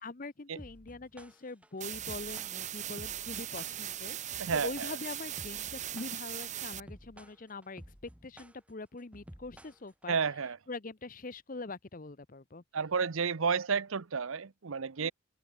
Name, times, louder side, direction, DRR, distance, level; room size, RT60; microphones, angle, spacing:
voice 1, 0.0-7.8 8.2-10.2 10.7-12.6 15.0-15.1, left 3 dB, 40° left, 0.8 m, -43 dB
sound 1, 0.6-10.2, equal, 5° right, 2.8 m, -52 dB
sound 2, 1.8-6.8, right 11 dB, 35° right, 0.9 m, -39 dB
voice 2, 4.4-4.7 10.1-10.6 12.7-15.1, right 5 dB, 75° right, 0.8 m, -31 dB
head